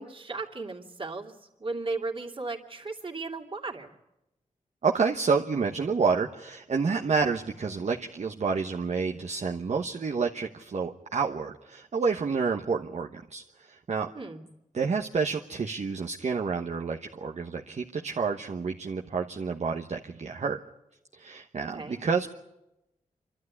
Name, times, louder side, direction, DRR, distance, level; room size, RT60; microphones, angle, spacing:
voice 1, 0.0-3.9 14.1-14.4 21.7-22.0, right 3 dB, 40° right, 1 dB, 2.8 m, -36 dB
voice 2, 4.8-14.1 14.7-20.6 21.1-22.3, right 5 dB, 55° right, 1 dB, 1.2 m, -29 dB
27.5 x 12.5 x 9.8 m, 0.93 s
cardioid pair, 75°, 14 cm